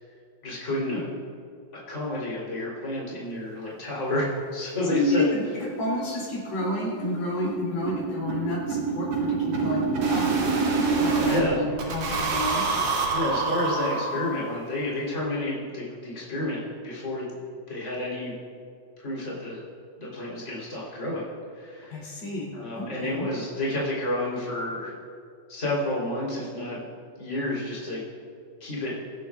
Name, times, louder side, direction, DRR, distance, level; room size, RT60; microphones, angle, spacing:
voice 1, 0.4-1.1 1.7-4.3 4.5-5.3 11.3-11.6 13.1-17.3 17.7-18.3 19.0-19.6 20.0-22.1 22.5-24.9 25.5-26.9 27.2-28.0 28.6-28.9, left 1 dB, 20° left, -6 dB, 3.7 m, -30 dB
sound 1, 4.5-4.6 5.0-5.1 5.4-5.5 5.8-5.9 6.2-11.4 11.8-14.6, right 4 dB, 85° right, 3.9 m, -27 dB
voice 2, 4.9-5.4 5.8-10.3 11.0-12.7 21.9-23.3, left 2 dB, 80° left, -6 dB, 4.9 m, -30 dB
22.5 x 12.0 x 2.4 m, 2.4 s
omnidirectional pair, 4.2 m